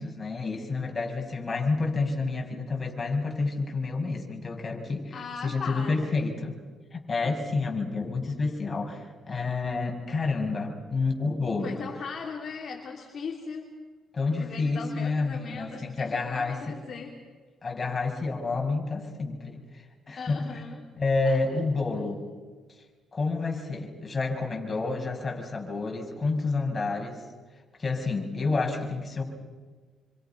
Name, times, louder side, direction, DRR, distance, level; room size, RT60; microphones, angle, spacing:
voice 1, 0.0-5.2 5.4-6.5 6.9-11.8 14.1-16.7 17.6-20.5 21.0-22.3 23.1-27.2 27.8-29.2, left 3 dB, 30° left, 1 dB, 6.8 m, -29 dB
voice 2, 5.1-6.1 7.3-7.4 11.6-13.7 14.4-17.1 20.1-20.9 21.2-21.6, left 5 dB, 50° left, 0 dB, 3.2 m, -39 dB
28.5 x 25.5 x 6.1 m, 1.4 s
cardioid pair, 90°, 0 cm